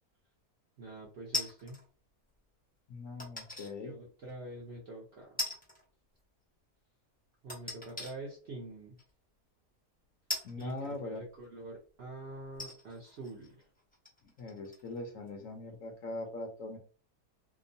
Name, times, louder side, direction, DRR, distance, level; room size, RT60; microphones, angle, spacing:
voice 1, 0.8-1.8 3.8-5.5 7.4-9.0 10.6-13.7, right 2 dB, 60° right, -3 dB, 0.7 m, -46 dB
sound 1, 1.3-1.9 3.2-3.7 4.3-4.4 5.4-5.8 6.1-6.2 7.5-8.1 9.0-9.1 10.3-11.4 12.0-12.1 12.5-15.0 15.3-15.4, left 2 dB, 10° left, 0.4 m, -39 dB
voice 2, 2.9-4.0 10.4-11.2 14.4-16.8, left 2 dB, 70° left, 4 dB, 0.9 m, -41 dB
2.9 x 2.0 x 2.6 m, 0.40 s
omnidirectional pair, 1.6 m